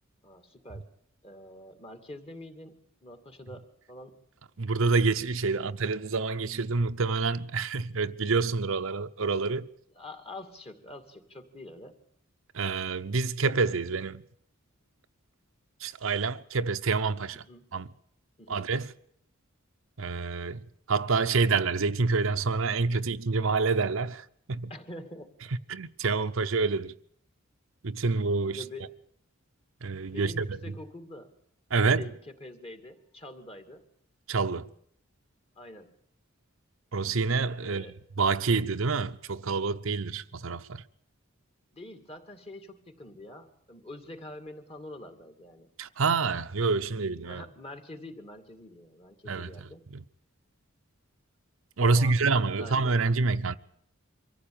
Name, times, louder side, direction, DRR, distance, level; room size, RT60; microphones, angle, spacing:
voice 1, 0.2-0.9 1.2-4.2 5.5-5.6 10.0-12.0 17.3-17.6 18.4-18.6 24.7-25.3 28.1-28.2 28.5-28.9 30.1-31.3 31.8-33.8 35.6-35.9 37.6-37.9 41.7-45.7 47.2-49.8 51.8-53.1, left 1 dB, 30° left, 2.5 m, -45 dB
voice 2, 4.6-9.7 12.5-14.2 15.8-17.4 17.7-17.9 18.5-18.9 20.0-20.6 20.9-24.7 25.7-26.9 27.8-28.6 29.8-30.6 31.7-32.1 34.3-34.7 36.9-40.8 45.8-47.4 49.3-50.0 51.8-53.5, right 4 dB, 70° right, 0.8 m, -27 dB
24.5 x 15.0 x 8.8 m
head